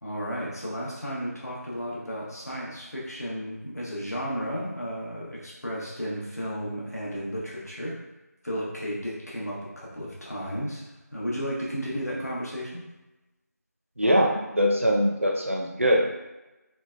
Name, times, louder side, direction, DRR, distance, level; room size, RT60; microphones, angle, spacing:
voice 1, 0.0-8.0 8.4-10.8 11.1-12.8, equal, 65° left, -5 dB, 1.0 m, -33 dB
voice 2, 14.0-16.0, equal, 50° right, 0 dB, 0.4 m, -22 dB
3.3 x 2.1 x 2.3 m, 1.0 s
figure-of-eight pair, 180°, 9 cm